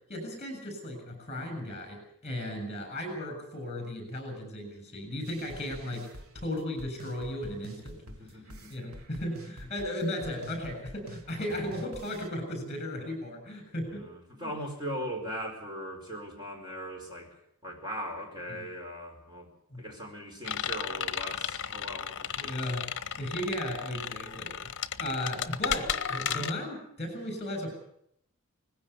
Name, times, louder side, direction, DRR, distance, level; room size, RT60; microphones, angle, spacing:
voice 1, 0.1-8.0 8.7-14.1 14.4-14.5 18.5-18.6 19.7-19.8 22.4-22.9 23.2-24.7 25.0-27.7, left 1 dB, 30° left, 6 dB, 7.4 m, -36 dB
sound 1, 5.3-12.3, right 1 dB, 75° right, 1.7 m, -47 dB
voice 2, 8.1-9.0 13.9-17.3 17.6-19.5 19.7-22.7, equal, 20° right, 2 dB, 4.7 m, -39 dB
sound 2, 20.4-26.5, left 8 dB, 55° left, 1.0 m, -34 dB
20.0 x 16.0 x 8.2 m, 0.72 s
head